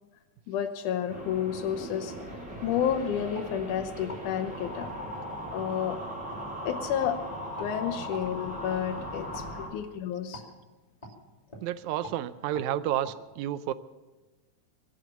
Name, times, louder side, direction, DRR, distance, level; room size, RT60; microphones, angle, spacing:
voice 1, 0.5-2.1 2.6-4.9 5.5-6.0 6.7-7.2 7.5-10.4, left 9 dB, 85° left, 6 dB, 2.4 m, -31 dB
sound 1, 1.1-9.7, equal, 20° right, 3.7 m, -39 dB
sound 2, 1.6-1.7 2.2-2.3 2.7-3.5 4.0-4.2 4.8-4.9 5.5-5.7 6.3-6.4 7.0-7.1 7.6-7.7 8.1-8.3 8.7-8.8 9.3-9.5 10.3-10.5 11.0-11.2 11.5-11.7 12.0-12.2 12.5-12.7 13.0-13.1, equal, 15° left, 2.7 m, -43 dB
voice 2, 11.6-13.7, right 12 dB, 80° right, 14 dB, 2.0 m, -30 dB
23.5 x 8.2 x 6.9 m, 1.2 s
omnidirectional pair, 3.5 m